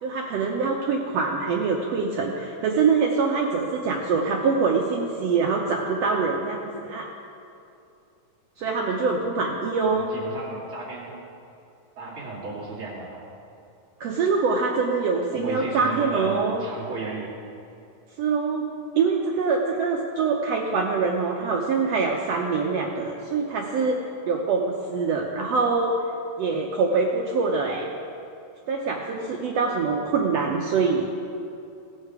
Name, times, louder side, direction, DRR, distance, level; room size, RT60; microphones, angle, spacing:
voice 1, 0.0-7.1 8.6-10.1 14.0-16.6 18.2-18.7 18.9-24.0 24.3-25.9 26.4-27.9 28.7-31.0, right 4 dB, 75° right, 0 dB, 1.5 m, -24 dB
voice 2, 9.8-11.2 12.0-13.2 15.3-17.3, right 4 dB, 40° right, -7 dB, 2.8 m, -34 dB
17.5 x 6.6 x 4.8 m, 2.6 s
omnidirectional pair, 3.7 m